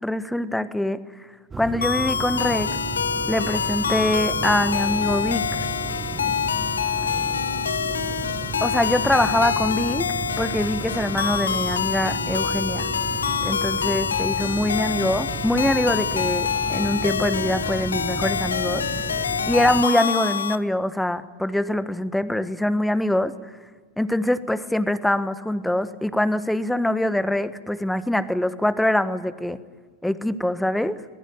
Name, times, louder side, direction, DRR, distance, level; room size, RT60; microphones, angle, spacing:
voice 1, 0.0-1.0 1.6-2.8 3.3-5.7 8.6-10.1 10.4-12.9 13.4-18.9 19.5-23.4 24.0-29.6 30.0-31.0, left 1 dB, 5° left, 13 dB, 1.4 m, -24 dB
sound 1, 1.5-19.8, right 5 dB, 15° right, 1.0 m, -34 dB
sound 2, 1.8-20.6, left 7 dB, 75° left, 1.1 m, -26 dB
26.5 x 20.5 x 8.7 m, 1.5 s
figure-of-eight pair, 90°, 0 cm